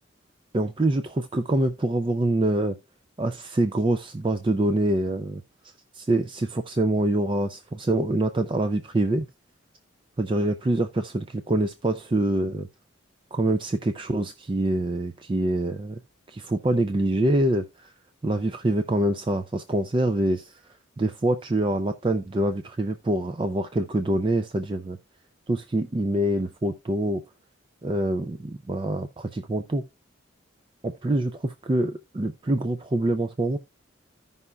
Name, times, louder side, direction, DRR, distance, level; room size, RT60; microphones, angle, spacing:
voice 1, 0.5-2.8 3.2-5.4 5.9-9.3 10.2-12.7 13.3-16.0 16.3-17.9 18.2-20.5 21.0-25.0 25.5-27.2 27.8-29.8 30.8-31.3 31.6-33.6, right 1 dB, 25° right, 0.4 m, -25 dB
15.0 x 5.5 x 2.3 m
head